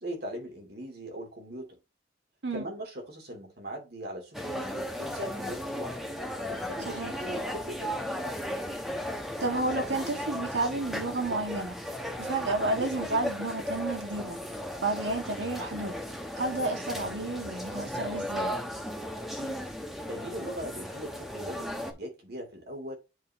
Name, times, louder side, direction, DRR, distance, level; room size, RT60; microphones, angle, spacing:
voice 1, 0.0-1.8 2.5-6.0 6.5-8.1 19.2-19.6 20.1-23.0, equal, 60° right, 2.7 m, -40 dB
sound 1, 4.3-21.9, equal, ahead, 1.0 m, -36 dB
voice 2, 9.4-11.8 12.2-14.4 14.8-16.0 16.4-18.6, right 2 dB, 90° right, 1.7 m, -31 dB
9.1 x 4.0 x 2.9 m
head